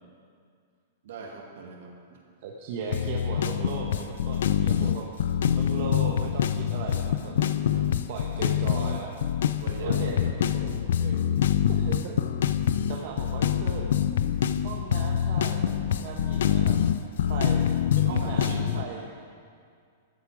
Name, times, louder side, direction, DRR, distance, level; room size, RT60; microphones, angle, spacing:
voice 1, 1.0-2.2 7.7-7.9 9.2-9.3 9.6-11.2 18.0-18.9, right 4 dB, 70° right, 0 dB, 2.2 m, -40 dB
voice 2, 2.4-5.3 5.5-7.3 8.1-9.2 9.8-10.2 11.7-12.2 12.9-13.9 14.6-16.8 17.2-17.7 18.0-19.1, right 5 dB, 50° right, -1 dB, 1.1 m, -37 dB
sound 1, 2.9-18.8, left 9 dB, 70° left, 0.5 m, -25 dB
13.5 x 8.2 x 5.0 m, 2.2 s
hypercardioid pair, 155°, 0 cm